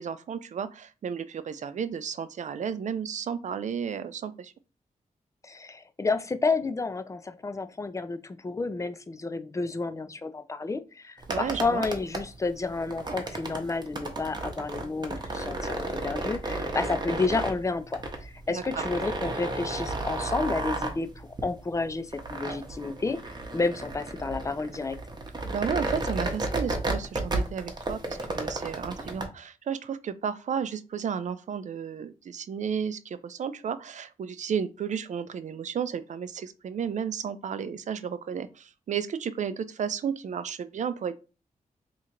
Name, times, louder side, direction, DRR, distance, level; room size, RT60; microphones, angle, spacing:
voice 1, 0.0-4.5 11.3-11.8 18.5-18.8 25.5-41.1, right 7 dB, 60° right, 0.4 m, -33 dB
voice 2, 5.4-25.0, left 3 dB, 20° left, 0.4 m, -31 dB
sound 1, 11.2-29.3, right 2 dB, 30° right, 0.8 m, -33 dB
2.8 x 2.5 x 4.3 m
cardioid pair, 90°, 14 cm